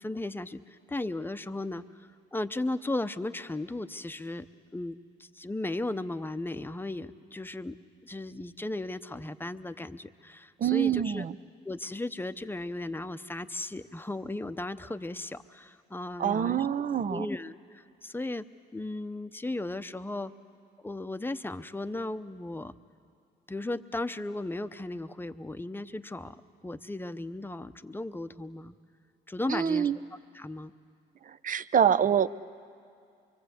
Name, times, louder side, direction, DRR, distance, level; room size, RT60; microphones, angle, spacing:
voice 1, 0.0-4.5 4.7-7.8 8.0-11.2 11.6-16.7 17.1-18.5 18.7-20.3 20.8-22.7 23.5-28.7 29.3-29.9 30.3-30.7, left 2 dB, 10° left, 11 dB, 0.8 m, -36 dB
voice 2, 10.6-11.3 16.2-17.3 29.5-30.0 31.3-32.3, right 8 dB, 45° right, 15 dB, 0.7 m, -25 dB
24.5 x 23.5 x 8.2 m, 2.3 s
cardioid pair, 75°, 19 cm